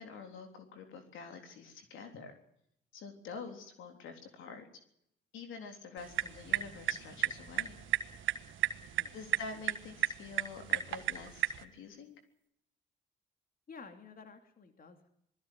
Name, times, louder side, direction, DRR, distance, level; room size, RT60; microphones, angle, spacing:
voice 1, 0.0-2.3 2.9-4.7 5.3-7.8 9.1-12.2, left 4 dB, 80° left, 5 dB, 3.6 m, -47 dB
voice 2, 5.9-6.5 8.9-9.2 13.7-15.1, left 5 dB, 45° left, 7 dB, 2.8 m, -53 dB
sound 1, 6.0-11.6, right 11 dB, 75° right, 1.6 m, -35 dB
20.0 x 14.5 x 9.4 m, 0.73 s
cardioid pair, 90°, 20 cm